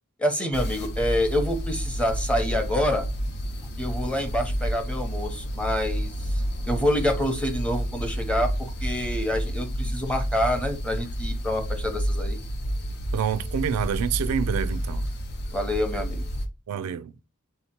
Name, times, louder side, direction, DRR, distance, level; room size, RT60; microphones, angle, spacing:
voice 1, 0.2-3.1 3.8-12.4 15.5-16.2, left 1 dB, 5° left, 0.7 m, -27 dB
sound 1, 0.5-16.5, equal, 50° left, 0.6 m, -30 dB
voice 2, 13.1-15.1 16.7-17.1, right 8 dB, 75° right, 0.3 m, -27 dB
3.9 x 2.8 x 4.2 m
head